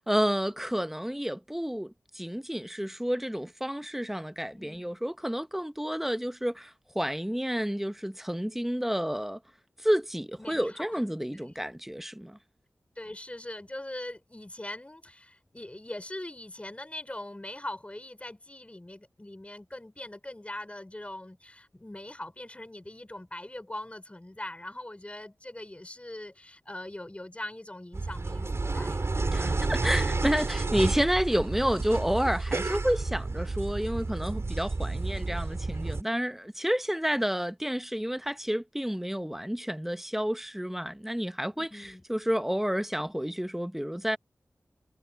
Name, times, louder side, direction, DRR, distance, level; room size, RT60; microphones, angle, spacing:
voice 1, 0.1-9.4 9.8-12.4 29.3-44.2, equal, 5° right, 0.9 m, -30 dB
voice 2, 4.5-5.0 10.4-11.0 11.3-11.5 13.0-29.0 35.0-35.3 41.6-42.0, left 1 dB, 20° left, 5.3 m, -42 dB
sound 1, 27.9-36.0, right 3 dB, 50° right, 4.4 m, -30 dB
wide cardioid pair, 60°, 6 cm